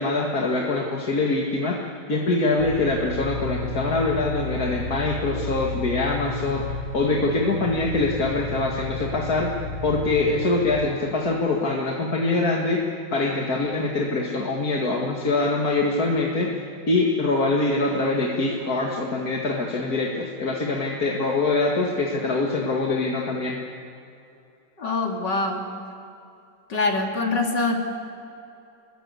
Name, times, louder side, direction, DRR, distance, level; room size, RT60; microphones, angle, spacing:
voice 1, 0.0-1.8 2.1-12.8 13.1-16.6 16.9-23.6, left 2 dB, 55° left, -1 dB, 2.5 m, -24 dB
sound 1, 2.6-10.6, left 2 dB, 90° right, 7.3 m, -32 dB
voice 2, 24.8-25.7 26.7-27.8, left 3 dB, 75° left, 1 dB, 3.6 m, -24 dB
27.0 x 22.0 x 8.3 m, 2.7 s
omnidirectional pair, 1.9 m